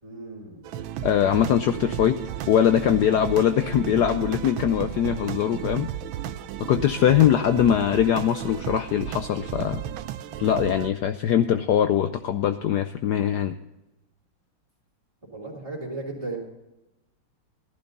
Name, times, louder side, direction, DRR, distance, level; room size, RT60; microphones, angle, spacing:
voice 1, 0.0-0.7 15.3-16.4, right 2 dB, 15° right, -8 dB, 3.2 m, -35 dB
sound 1, 0.6-10.9, right 11 dB, 80° right, 1.4 m, -34 dB
voice 2, 1.0-2.2 2.5-5.9 6.7-9.8 10.4-13.6, left 10 dB, 70° left, 9 dB, 1.0 m, -22 dB
15.0 x 11.5 x 4.0 m, 0.96 s
omnidirectional pair, 2.3 m